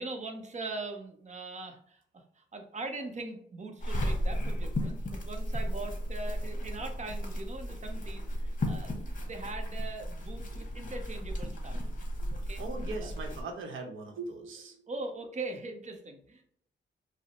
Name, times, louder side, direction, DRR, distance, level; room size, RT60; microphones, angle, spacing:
voice 1, 0.0-11.9 12.3-12.6 13.0-13.1 14.9-16.4, right 3 dB, 35° right, 5 dB, 0.7 m, -41 dB
sound 1, 3.8-13.4, equal, 40° left, 0.9 m, -34 dB
voice 2, 12.6-14.8, right 3 dB, 90° right, 3 dB, 0.9 m, -40 dB
5.2 x 2.0 x 2.9 m, 0.66 s
cardioid pair, 100°, 20 cm